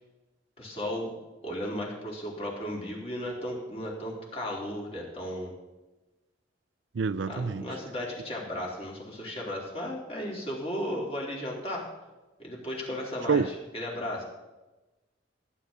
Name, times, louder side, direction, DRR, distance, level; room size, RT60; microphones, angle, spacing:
voice 1, 0.6-1.1 1.4-5.5 7.3-11.9 12.4-14.2, left 1 dB, 35° left, 3.8 m, -35 dB
voice 2, 6.9-7.7 13.3-13.5, right 5 dB, 75° right, 0.5 m, -26 dB
19.5 x 9.9 x 4.0 m
head